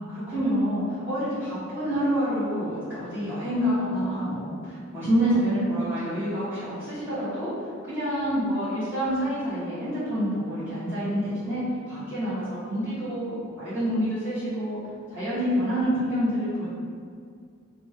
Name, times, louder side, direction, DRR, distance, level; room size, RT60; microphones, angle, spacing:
voice 1, 0.0-7.5 7.8-14.8 15.1-16.7, equal, 10° right, -15 dB, 1.1 m, -27 dB
3.1 x 2.3 x 4.2 m, 2.2 s
head